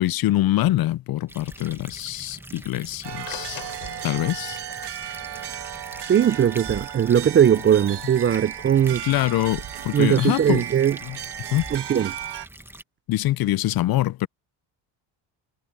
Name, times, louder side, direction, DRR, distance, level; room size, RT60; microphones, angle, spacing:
voice 1, 0.0-3.6 4.0-4.6 9.0-10.6 11.0-11.2 11.5-11.7 13.1-14.3, left 15 dB, 50° left, 0.5 m, -24 dB
sound 1, 1.3-12.8, right 1 dB, 5° right, 1.0 m, -43 dB
sound 2, 3.0-12.5, right 12 dB, 55° right, 1.8 m, -35 dB
sound 3, 3.3-11.4, left 17 dB, 75° left, 7.4 m, -46 dB
voice 2, 6.1-9.0 9.9-11.0 11.7-12.1, right 9 dB, 25° right, 0.4 m, -19 dB
supercardioid pair, 90°, 48 cm